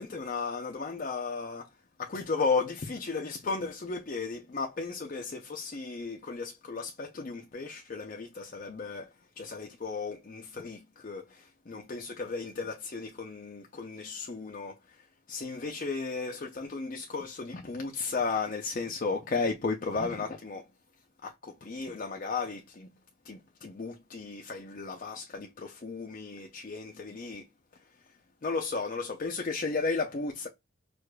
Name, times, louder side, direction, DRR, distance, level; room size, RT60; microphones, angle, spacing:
voice 1, 0.0-1.7 2.0-9.1 9.4-20.7 21.2-22.9 23.2-27.5 28.4-30.5, left 4 dB, 40° left, 0.5 m, -34 dB
4.7 x 2.4 x 2.2 m
head